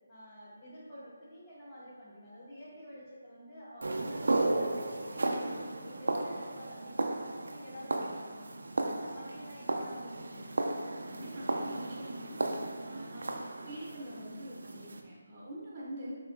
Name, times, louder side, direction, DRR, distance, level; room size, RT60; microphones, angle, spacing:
voice 1, 0.1-10.8, equal, 20° left, -9 dB, 1.4 m, -49 dB
sound 1, 3.8-15.0, right 2 dB, 75° right, 0.5 m, -35 dB
voice 2, 11.0-12.4 12.9-16.2, equal, 25° right, -5 dB, 0.8 m, -44 dB
6.6 x 2.9 x 2.5 m, 1.4 s
figure-of-eight pair, 165°, 0 cm